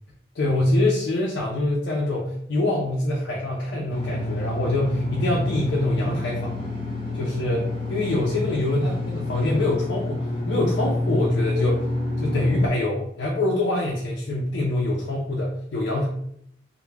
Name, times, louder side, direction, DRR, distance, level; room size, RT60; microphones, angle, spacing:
voice 1, 0.3-6.6 7.1-11.9 12.2-16.1, left 1 dB, 85° left, -4 dB, 0.4 m, -25 dB
sound 1, 3.9-12.7, left 2 dB, 30° left, 0.8 m, -28 dB
2.2 x 2.0 x 3.2 m, 0.71 s
head